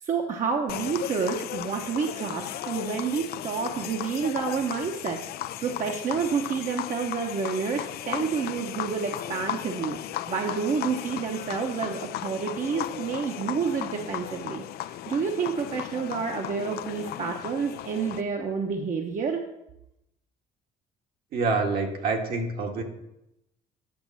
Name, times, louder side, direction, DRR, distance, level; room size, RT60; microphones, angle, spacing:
voice 1, 0.0-5.2 5.6-10.0 10.3-19.4, right 5 dB, 50° right, 2 dB, 1.0 m, -29 dB
sound 1, 0.7-18.2, left 13 dB, 65° left, 0.4 m, -36 dB
voice 2, 21.3-22.8, right 3 dB, 65° right, 2 dB, 1.8 m, -26 dB
8.8 x 6.1 x 7.1 m, 0.88 s
cardioid pair, 110°, 17 cm